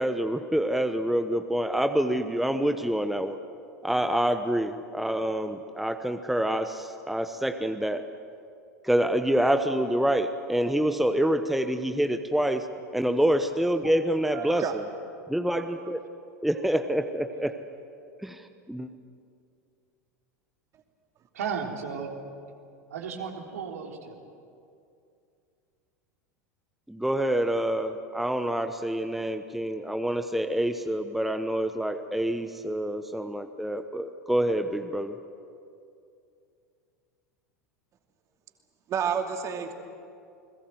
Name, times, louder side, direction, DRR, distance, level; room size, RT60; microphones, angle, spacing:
voice 1, 0.0-3.4 3.8-8.0 8.8-12.7 12.9-14.8 15.3-16.0 16.4-17.5 18.2-18.9 26.9-35.1, right 1 dB, ahead, 8 dB, 1.0 m, -27 dB
voice 2, 14.3-14.8 38.9-39.7, right 7 dB, 35° right, 4 dB, 2.7 m, -30 dB
voice 3, 21.3-22.1 22.9-24.2, right 6 dB, 65° right, 1 dB, 3.5 m, -34 dB
29.5 x 21.0 x 7.9 m, 2.5 s
figure-of-eight pair, 80°, 9 cm